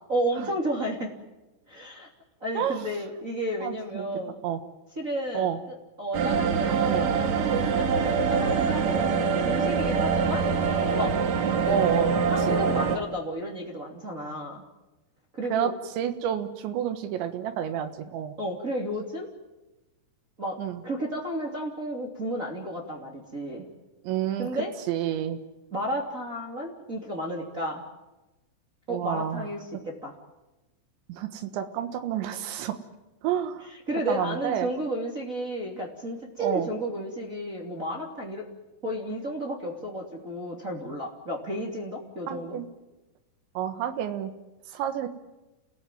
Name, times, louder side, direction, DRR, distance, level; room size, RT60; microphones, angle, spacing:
voice 1, 0.1-1.1 1.7-2.1 2.4-4.3 5.0-10.5 10.9-11.1 11.6-12.0 12.3-14.6 15.4-15.7 18.4-19.3 20.4-20.6 20.8-23.7 24.4-24.7 25.7-27.8 28.9-30.1 33.9-38.4 38.8-42.6, equal, 20° right, -2 dB, 2.7 m, -32 dB
voice 2, 2.6-2.9 3.6-4.1 4.4-4.6 5.3-5.6 6.9-7.1 11.6-12.1 12.5-12.6 15.5-18.4 20.6-20.8 24.0-24.5 24.9-25.4 28.9-29.5 31.1-32.8 33.2-33.7 34.1-34.7 36.4-36.7 42.3-42.7 43.6-44.3 44.7-45.1, right 10 dB, 85° right, 8 dB, 3.8 m, -29 dB
sound 1, 6.1-13.0, right 6 dB, 55° right, 2.5 m, -24 dB
29.5 x 18.5 x 9.3 m, 1.1 s
omnidirectional pair, 5.1 m